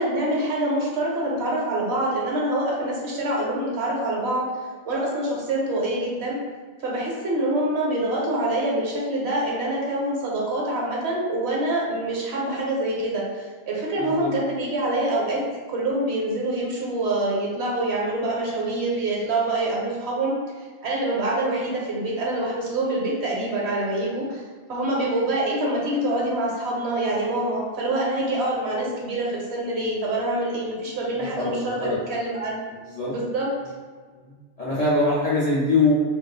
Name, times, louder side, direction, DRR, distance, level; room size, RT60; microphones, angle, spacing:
voice 1, 0.0-4.5 4.8-6.4 6.8-15.4 15.7-24.4 24.7-32.6 33.1-33.5, right 1 dB, 70° right, -4 dB, 0.9 m, -25 dB
voice 2, 14.0-14.3 31.3-32.0 32.7-33.1 34.1-35.9, left 2 dB, 55° left, -9 dB, 0.4 m, -23 dB
2.5 x 2.3 x 2.3 m, 1.5 s
omnidirectional pair, 1.2 m